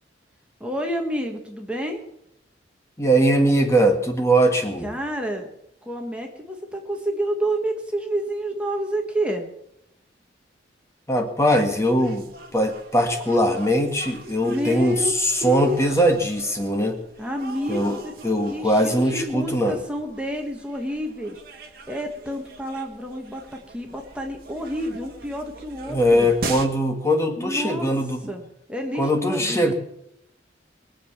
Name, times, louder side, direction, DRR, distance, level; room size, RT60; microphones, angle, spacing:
voice 1, 0.6-2.0 4.8-5.5 5.8-9.5 14.4-15.1 15.4-15.9 17.2-18.1 18.5-21.4 21.9-26.3 27.4-27.9 28.3-29.6, equal, 5° right, 2 dB, 1.6 m, -29 dB
voice 2, 3.0-4.9 11.1-17.0 17.7-19.8 25.9-28.3 29.0-29.7, equal, 15° left, 4 dB, 1.7 m, -21 dB
sound 1, 11.5-26.7, right 3 dB, 50° right, 1.6 m, -41 dB
22.5 x 7.8 x 7.2 m, 0.77 s
head